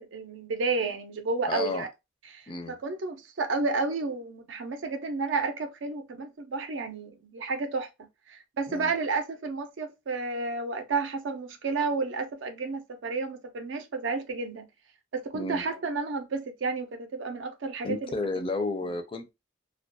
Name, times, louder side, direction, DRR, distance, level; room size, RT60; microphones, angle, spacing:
voice 1, 0.0-1.9 2.3-7.9 8.3-14.7 15.1-18.1 18.8-18.9, right 4 dB, 80° right, 0.5 m, -31 dB
voice 2, 1.5-1.9 2.5-2.8 8.7-8.9 15.3-15.6 17.8-19.3, left 3 dB, 30° left, 0.4 m, -32 dB
2.3 x 2.1 x 2.5 m
head